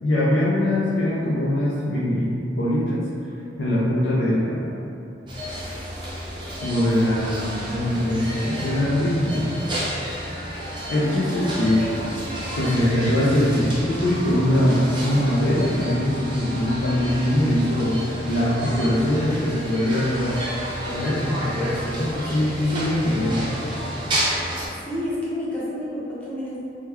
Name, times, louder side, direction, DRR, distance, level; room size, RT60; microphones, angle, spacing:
voice 1, 0.0-3.0 3.6-4.7 6.6-9.5 10.1-10.2 10.9-12.0 12.6-20.4 20.8-23.5, left 1 dB, 70° left, -8 dB, 0.5 m, -22 dB
sound 1, 5.3-24.7, equal, 25° right, 0.5 m, -31 dB
voice 2, 24.9-26.6, left 1 dB, 10° left, -10 dB, 0.7 m, -30 dB
3.6 x 2.2 x 2.9 m, 2.7 s
head